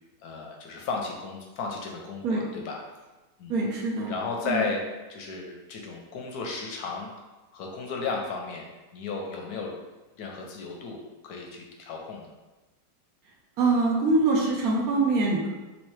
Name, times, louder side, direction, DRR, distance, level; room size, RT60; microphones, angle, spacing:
voice 1, 0.2-2.8 3.4-3.5 4.1-4.8 5.1-7.3 7.5-8.6 8.9-9.7 10.2-12.3, left 4 dB, 70° left, 0 dB, 1.0 m, -34 dB
voice 2, 3.5-4.1 4.4-4.6 13.6-15.5, right 3 dB, 70° right, -2 dB, 1.0 m, -24 dB
3.3 x 3.1 x 3.1 m, 1.1 s
omnidirectional pair, 1.8 m